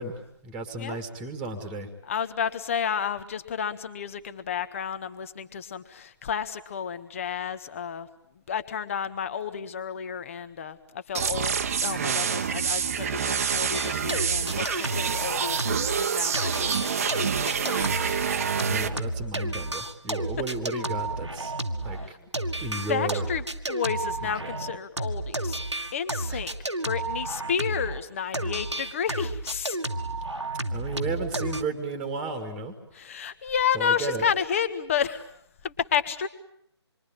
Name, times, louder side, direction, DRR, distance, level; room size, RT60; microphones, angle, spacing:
voice 1, 0.0-1.9 2.2-2.3 18.7-21.5 21.8-23.3 24.2-24.5 26.3-26.5 30.7-33.0 33.7-34.3, right 3 dB, 5° right, 6 dB, 2.1 m, -34 dB
voice 2, 2.1-8.1 8.5-18.6 22.9-25.6 25.9-26.5 26.8-29.8 32.9-36.3, left 7 dB, 30° left, 12 dB, 1.6 m, -31 dB
sound 1, 11.1-18.9, right 7 dB, 30° right, 1.2 m, -27 dB
sound 2, 13.7-16.1 16.3-28.0 28.3-31.6, right 2 dB, 90° right, 1.8 m, -32 dB
26.5 x 23.5 x 8.8 m, 0.71 s
figure-of-eight pair, 150°, 14 cm